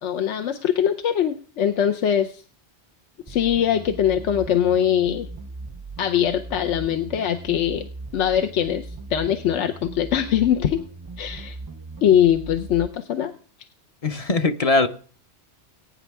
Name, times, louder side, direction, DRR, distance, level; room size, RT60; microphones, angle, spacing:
voice 1, 0.0-2.4 3.3-5.3 6.0-7.8 8.1-10.8 11.2-11.6 12.0-13.3, left 9 dB, 85° left, 1.0 m, -22 dB
sound 1, 3.3-12.9, right 3 dB, 30° right, 0.4 m, -38 dB
voice 2, 14.0-14.9, left 3 dB, 35° left, 0.7 m, -20 dB
21.0 x 9.3 x 3.5 m
omnidirectional pair, 1.2 m